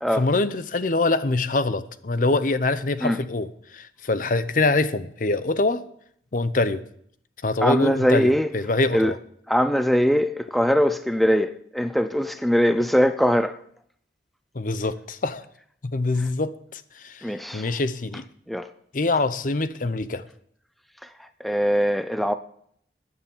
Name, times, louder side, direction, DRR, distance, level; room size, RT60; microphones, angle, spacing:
voice 1, 0.2-5.8 6.3-6.8 7.4-9.2 14.5-15.4 15.8-18.2 18.9-20.2, left 2 dB, 50° left, 0.7 m, -24 dB
voice 2, 7.6-8.5 8.9-9.1 9.5-13.6 17.2-17.7 18.5-18.7 21.0-22.3, equal, ahead, 0.4 m, -22 dB
15.0 x 9.7 x 5.5 m
head